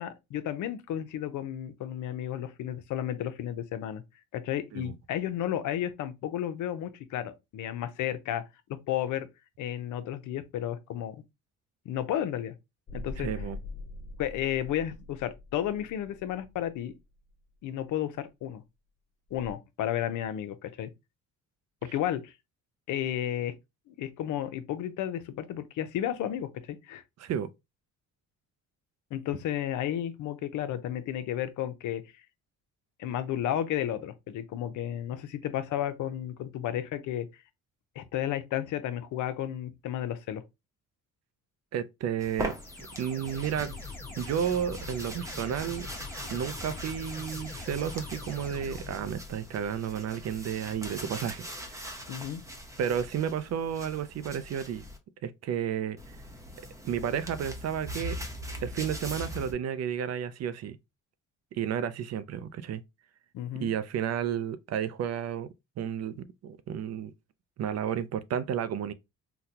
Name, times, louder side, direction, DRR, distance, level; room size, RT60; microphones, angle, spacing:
voice 1, 0.0-4.0 4.3-8.4 8.9-9.3 9.6-11.2 11.9-12.5 12.9-13.3 14.2-16.9 17.6-18.6 19.3-20.9 21.9-22.3 22.9-23.5 23.9-27.0 29.1-32.0 33.0-37.3 38.0-40.4 52.1-52.4 63.3-63.7, left 11 dB, 80° left, 0.6 m, -32 dB
sound 1, 12.9-17.3 19.3-19.5, left 3 dB, 35° left, 0.5 m, -43 dB
voice 2, 13.2-13.6 27.2-27.5 41.7-42.5 43.0-43.8 44.1-45.9 46.3-52.0 52.8-54.8 55.2-56.0 56.8-58.2 58.6-60.8 61.5-62.8 63.5-65.5 65.8-67.1 67.6-68.9, right 8 dB, 60° right, 0.5 m, -32 dB
sound 2, 42.2-55.0 56.0-59.5, equal, 10° right, 0.8 m, -41 dB
sound 3, 42.5-49.3, left 3 dB, 5° left, 1.4 m, -42 dB
3.9 x 2.2 x 2.8 m
cardioid pair, 90°, 30 cm